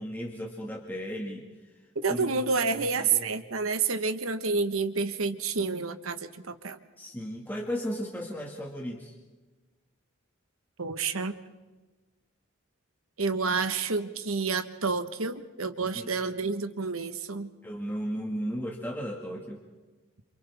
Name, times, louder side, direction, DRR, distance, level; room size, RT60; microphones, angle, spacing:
voice 1, 0.0-1.5 2.1-2.3 2.7-3.4 7.0-9.1 15.9-16.3 17.6-19.6, equal, 10° left, -1 dB, 1.8 m, -35 dB
voice 2, 2.0-6.8 10.8-11.3 13.2-17.5, right 4 dB, 80° right, 9 dB, 1.3 m, -29 dB
29.5 x 27.5 x 3.6 m, 1.2 s
head